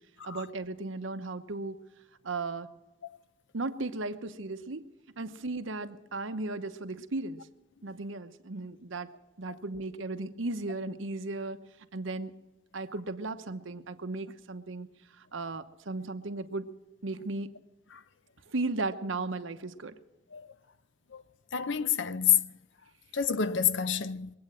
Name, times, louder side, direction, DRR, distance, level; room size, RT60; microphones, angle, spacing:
voice 1, 0.2-1.8 2.2-2.7 3.5-4.9 5.2-7.4 7.8-9.1 9.4-11.6 11.9-12.4 12.7-14.9 15.2-16.7 17.0-17.5 18.5-20.0, right 2 dB, 80° right, 1.0 m, -36 dB
voice 2, 21.5-22.4 23.1-24.3, left 8 dB, 65° left, 0.6 m, -27 dB
21.5 x 8.7 x 7.5 m
head